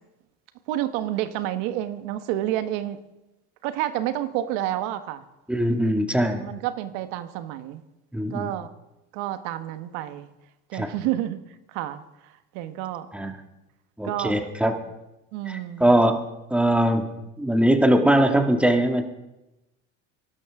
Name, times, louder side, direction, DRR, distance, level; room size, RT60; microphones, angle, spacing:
voice 1, 0.7-3.0 3.6-5.2 6.4-7.8 8.3-8.7 9.1-10.3 10.7-11.4 11.7-13.1 14.0-14.5 15.3-16.0, right 13 dB, 75° right, 11 dB, 1.3 m, -29 dB
voice 2, 5.5-6.4 8.1-8.5 10.7-10.9 13.1-13.3 14.0-14.8 15.5-16.2 16.5-17.1 17.4-19.1, right 1 dB, 5° right, 4 dB, 2.0 m, -21 dB
23.5 x 12.5 x 3.7 m, 0.95 s
supercardioid pair, 85°, 37 cm